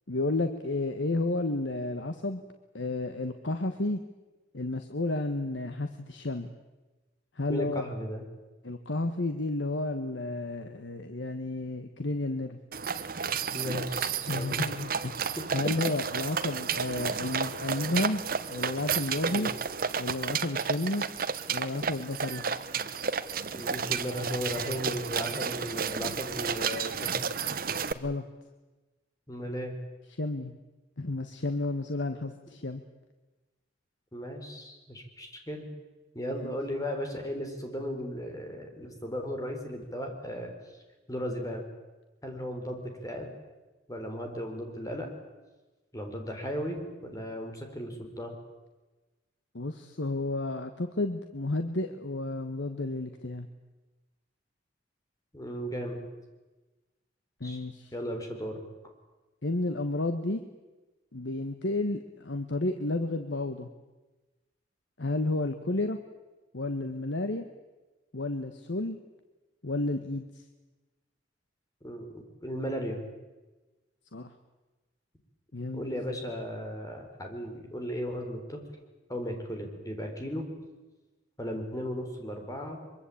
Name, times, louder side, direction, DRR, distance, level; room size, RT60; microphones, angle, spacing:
voice 1, 0.1-2.4 2.7-4.0 4.5-6.5 7.4-7.8 8.6-12.6 14.3-15.2 15.5-18.2 18.5-19.5 20.0-21.0 21.5-22.4 27.9-28.2 30.2-30.6 31.0-32.8 36.4-36.6 49.5-53.5 57.4-57.9 59.4-60.4 61.1-63.7 65.0-66.0 66.5-67.4 68.1-69.0 69.6-70.3 74.1-74.3 75.5-75.9, left 2 dB, 80° left, 7 dB, 1.4 m, -31 dB
voice 2, 7.5-8.2 13.5-14.6 15.4-15.5 19.3-19.5 23.5-27.3 29.3-29.8 32.5-32.6 34.1-35.7 36.1-40.5 41.1-41.7 42.2-43.3 43.9-45.1 45.9-48.3 55.3-56.0 57.4-57.6 57.9-58.5 71.8-73.0 75.7-78.6 79.1-80.5 81.4-82.8, equal, 20° left, 3 dB, 4.2 m, -36 dB
sound 1, 12.7-27.9, right 6 dB, 50° right, 1.1 m, -32 dB
24.0 x 23.5 x 8.6 m, 1.2 s
head